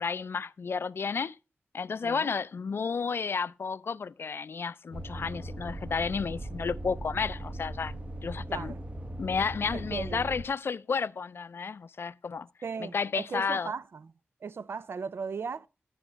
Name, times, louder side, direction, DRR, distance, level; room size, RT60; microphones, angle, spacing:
voice 1, 0.0-1.4 1.7-7.9 8.2-8.7 9.2-12.5 12.8-13.7, left 5 dB, 60° left, 0.4 m, -32 dB
voice 2, 2.0-2.3 8.5-8.8 9.7-10.3 12.6-14.1 14.4-15.7, right 5 dB, 65° right, 0.4 m, -37 dB
sound 1, 4.9-10.4, right 1 dB, 30° right, 1.0 m, -39 dB
11.0 x 7.3 x 4.3 m
wide cardioid pair, 85°, 4 cm